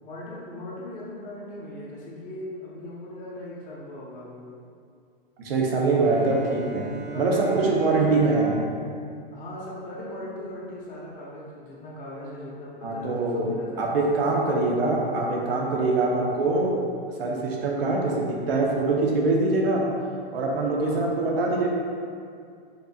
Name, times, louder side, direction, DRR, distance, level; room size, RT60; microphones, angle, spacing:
voice 1, 0.0-4.5 5.9-6.7 7.1-8.1 9.3-15.5 16.1-16.3 20.8-21.2, left 1 dB, 25° left, -6 dB, 1.1 m, -39 dB
voice 2, 5.4-6.9 7.1-8.5 12.8-13.5 13.8-16.7 17.2-19.8 20.3-21.7, right 3 dB, 75° right, -1 dB, 1.0 m, -23 dB
Bowed string instrument, 6.0-10.1, right 5 dB, 35° right, 0.5 m, -38 dB
5.5 x 4.0 x 2.4 m, 2.3 s
hypercardioid pair, 140°, 29 cm